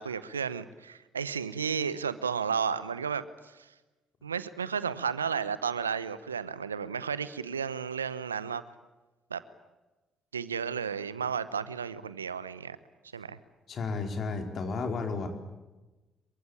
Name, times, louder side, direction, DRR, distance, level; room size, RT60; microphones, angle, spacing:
voice 1, 0.0-3.2 4.2-8.6 9.3-9.4 10.3-12.8 13.1-13.4, right 6 dB, 90° right, 16 dB, 0.9 m, -33 dB
voice 2, 13.7-15.3, left 4 dB, 50° left, 4 dB, 4.6 m, -32 dB
27.0 x 23.5 x 8.9 m, 1.1 s
figure-of-eight pair, 45°, 0 cm